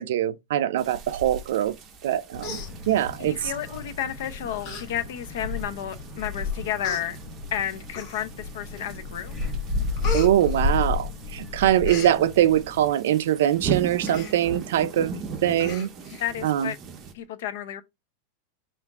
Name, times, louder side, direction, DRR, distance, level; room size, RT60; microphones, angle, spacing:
voice 1, 0.0-1.7 2.0-2.6 2.9-3.4 10.1-15.1 15.4-15.9 16.4-16.7, right 11 dB, 65° right, 0.5 m, -23 dB
sound 1, 0.8-17.1, right 5 dB, 20° right, 0.6 m, -39 dB
Human voice, 1.9-2.1 2.4-3.3 4.0-4.2 4.6-4.8 5.2-5.3 6.1-6.2 6.8-7.0 7.9-8.5 8.9-9.3 9.6-11.3 11.6-12.1 14.0-14.3 14.7-14.8 15.1-15.2 15.6-16.2 16.6-16.7, left 3 dB, 35° left, 1.6 m, -37 dB
sound 2, 2.3-12.9, left 3 dB, 5° left, 1.2 m, -32 dB
voice 2, 3.2-7.2 7.5-9.3 16.2-16.8 17.1-17.8, left 10 dB, 60° left, 0.7 m, -31 dB
5.7 x 2.5 x 3.6 m
supercardioid pair, 175°, 0 cm